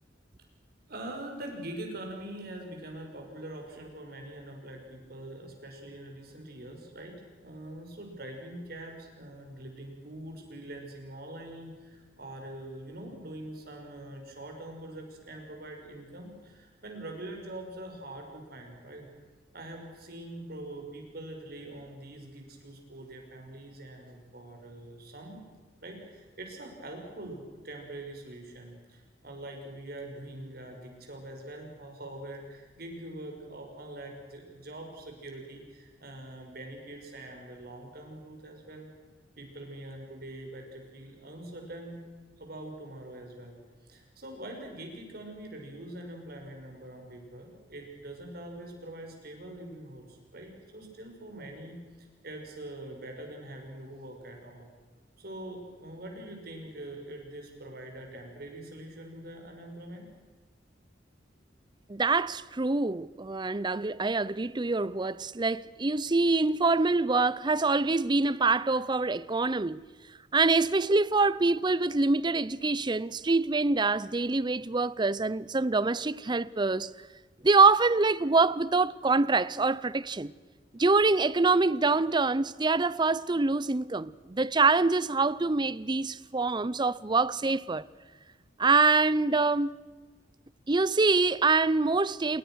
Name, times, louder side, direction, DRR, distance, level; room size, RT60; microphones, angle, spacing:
voice 1, 0.9-19.1 19.5-25.4 25.8-38.9 39.4-42.0 42.4-54.7 55.2-60.1, right 1 dB, 60° right, 5.8 m, -43 dB
voice 2, 61.9-69.8 70.3-76.9 77.4-80.3 80.7-87.8 88.6-89.8 90.7-92.4, right 3 dB, 25° right, 0.6 m, -25 dB
28.5 x 21.0 x 6.4 m
head